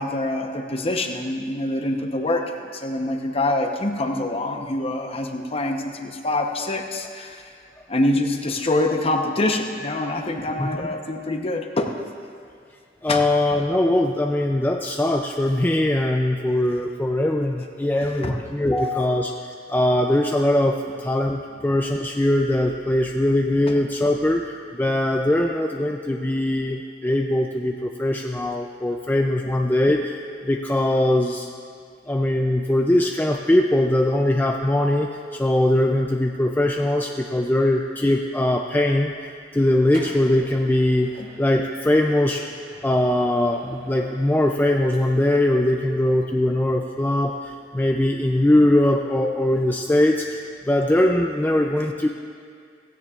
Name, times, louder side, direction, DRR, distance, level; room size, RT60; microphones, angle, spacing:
voice 1, 0.0-7.4 7.9-11.9 13.1-13.2 18.2-18.4 41.2-41.3, left 2 dB, 30° left, 4 dB, 0.9 m, -25 dB
voice 2, 13.0-19.4 19.7-31.5 32.1-41.1 41.4-42.5 42.8-52.1, left 1 dB, 10° left, 1 dB, 0.4 m, -21 dB
Microwave oven, 39.5-45.5, equal, 50° right, 3.6 m, -47 dB
16.5 x 16.0 x 2.4 m, 2.3 s
head